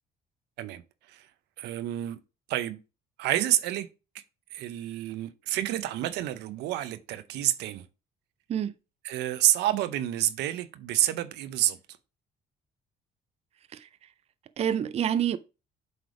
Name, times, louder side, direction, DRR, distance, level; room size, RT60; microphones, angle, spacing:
voice 1, 1.6-2.2 2.5-2.8 3.2-3.9 4.5-7.9 9.0-11.8, right 13 dB, 85° right, 0.7 m, -28 dB
voice 2, 14.6-15.4, right 9 dB, 40° right, 0.5 m, -27 dB
7.9 x 3.4 x 4.8 m
cardioid pair, 110°, 17 cm